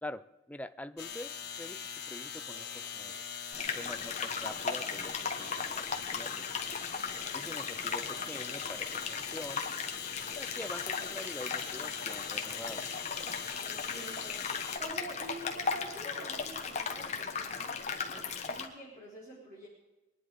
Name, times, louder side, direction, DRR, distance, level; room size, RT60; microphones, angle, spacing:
voice 1, 0.0-3.4 3.7-6.4 7.3-9.7 10.3-12.8, left 1 dB, 5° left, 12 dB, 0.4 m, -45 dB
sound 1, 1.0-14.8, left 7 dB, 55° left, 1.5 m, -42 dB
sound 2, 2.5-3.2 5.0-5.9 8.0-9.1, left 1 dB, 75° right, 5.5 m, -57 dB
sound 3, 3.5-18.7, left 5 dB, 35° left, 1.4 m, -37 dB
voice 2, 7.0-7.5 13.6-19.7, right 1 dB, 40° right, -5 dB, 3.9 m, -47 dB
22.5 x 11.0 x 5.2 m, 1.1 s
head